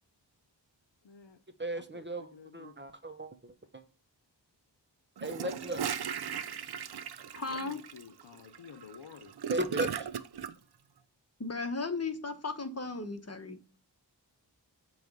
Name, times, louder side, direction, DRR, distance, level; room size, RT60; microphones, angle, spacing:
voice 1, 1.0-1.4 1.7-2.8 7.5-9.3, left 6 dB, 75° left, 0.8 m, -51 dB
voice 2, 1.6-3.8 5.2-5.9 9.5-10.1, right 1 dB, 25° right, 0.8 m, -36 dB
Gurgling / Toilet flush, 5.2-10.5, right 8 dB, 60° right, 0.6 m, -37 dB
voice 3, 7.3-7.8 11.4-13.6, left 3 dB, 35° left, 1.1 m, -36 dB
7.8 x 3.2 x 5.3 m
wide cardioid pair, 65°, 44 cm